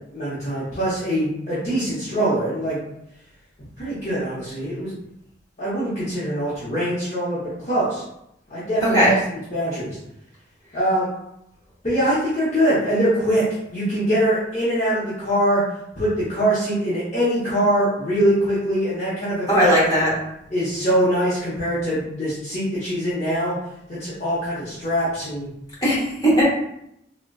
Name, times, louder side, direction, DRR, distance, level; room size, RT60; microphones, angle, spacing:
voice 1, 0.1-2.8 3.8-4.9 5.6-8.0 8.5-9.1 9.5-10.0 10.7-11.1 11.8-13.4 13.7-15.6 16.0-19.7 20.5-23.5 23.9-25.5, right 1 dB, 40° left, -10 dB, 0.8 m, -23 dB
voice 2, 8.8-9.2 19.5-20.2 25.8-26.4, equal, 20° left, -8 dB, 1.2 m, -18 dB
3.8 x 2.1 x 2.2 m, 0.79 s
head